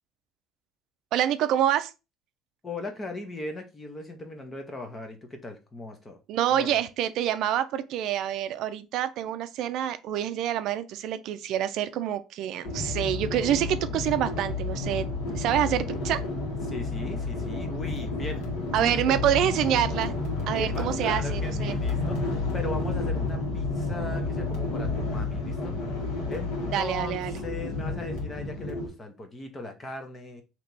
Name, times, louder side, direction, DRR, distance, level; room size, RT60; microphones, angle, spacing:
voice 1, 1.1-1.9 6.3-15.1 15.3-16.2 18.7-20.1 20.5-21.8 26.7-27.4, right 11 dB, 55° right, 0.4 m, -27 dB
voice 2, 2.6-6.2 6.5-6.8 16.6-18.4 18.8-19.2 20.5-25.8 26.3-30.4, left 2 dB, 15° left, 0.8 m, -38 dB
sound 1, 12.6-28.9, left 3 dB, 90° left, 1.6 m, -30 dB
3.3 x 2.9 x 4.0 m
cardioid pair, 170°, 0 cm